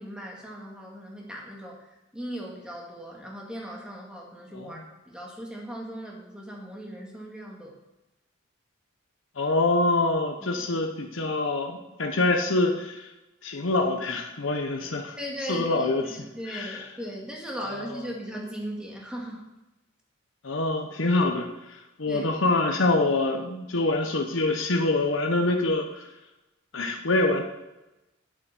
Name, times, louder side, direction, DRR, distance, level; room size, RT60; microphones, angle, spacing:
voice 1, 0.0-1.8 2.1-4.8 5.1-7.7 10.4-10.6 15.2-19.4 22.1-22.3, equal, 5° right, -2 dB, 1.9 m, -38 dB
voice 2, 9.4-13.1 13.4-15.2 15.5-16.2 16.5-16.8 17.6-18.0 20.4-26.0 26.7-27.4, left 2 dB, 75° left, 3 dB, 0.9 m, -25 dB
8.6 x 7.8 x 6.0 m, 1.0 s
head